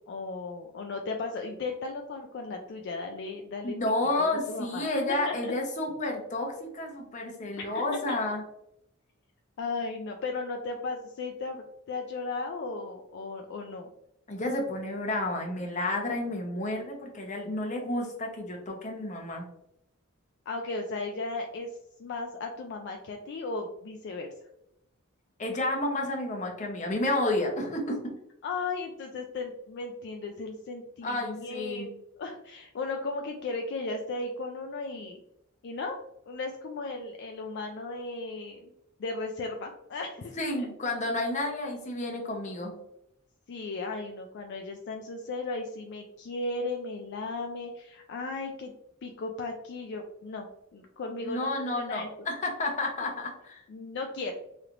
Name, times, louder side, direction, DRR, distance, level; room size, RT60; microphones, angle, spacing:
voice 1, 0.1-3.8 4.5-5.5 7.6-7.8 8.1-8.2 9.6-13.9 20.5-21.7 22.0-24.3 28.4-31.9 32.2-35.2 35.6-36.0 36.3-38.7 39.0-40.7 43.5-48.7 49.0-52.1 53.7-54.3, left 3 dB, 60° left, 3 dB, 0.4 m, -36 dB
voice 2, 3.6-8.4 14.3-19.4 25.4-28.0 31.0-31.9 40.4-42.7 51.2-53.6, left 2 dB, 35° left, 1 dB, 0.7 m, -31 dB
3.2 x 2.9 x 2.4 m, 0.80 s
head